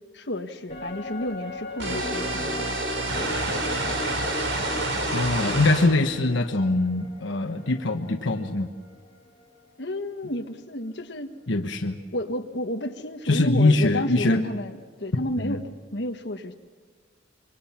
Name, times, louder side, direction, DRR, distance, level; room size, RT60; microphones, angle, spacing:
voice 1, 0.1-2.7 3.2-3.5 9.8-11.4 12.1-16.5, left 1 dB, 65° left, 6 dB, 1.5 m, -31 dB
sound 1, 0.7-10.2 10.5-10.6, left 2 dB, 35° left, 3.0 m, -40 dB
sound 2, 1.8-5.9, right 2 dB, 80° right, 4.4 m, -28 dB
voice 2, 5.1-8.7 11.5-12.0 13.2-14.4 15.4-15.6, left 2 dB, 90° left, 6 dB, 1.2 m, -23 dB
26.5 x 24.0 x 5.8 m, 1.5 s
head